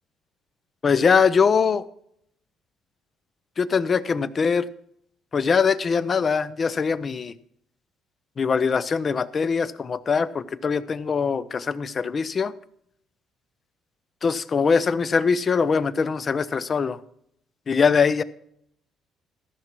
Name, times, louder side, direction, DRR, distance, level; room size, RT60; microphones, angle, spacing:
voice 1, 0.8-1.8 3.6-4.6 5.3-7.3 8.4-12.5 14.2-17.0 17.7-18.2, left 5 dB, 35° left, 17 dB, 0.5 m, -22 dB
14.0 x 6.0 x 6.0 m, 0.72 s
cardioid pair, 115°, 0 cm